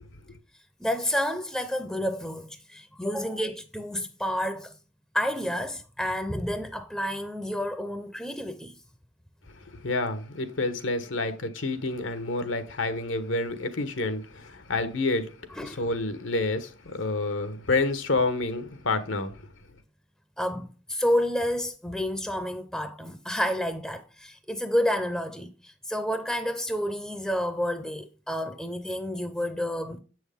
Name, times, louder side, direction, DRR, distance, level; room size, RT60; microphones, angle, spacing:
voice 1, 0.8-4.7 5.1-8.8 15.5-15.8 20.4-30.0, equal, ahead, 0.5 m, -30 dB
voice 2, 9.5-15.3 15.6-19.4, left 2 dB, 90° left, 1.2 m, -29 dB
7.5 x 6.2 x 3.5 m
head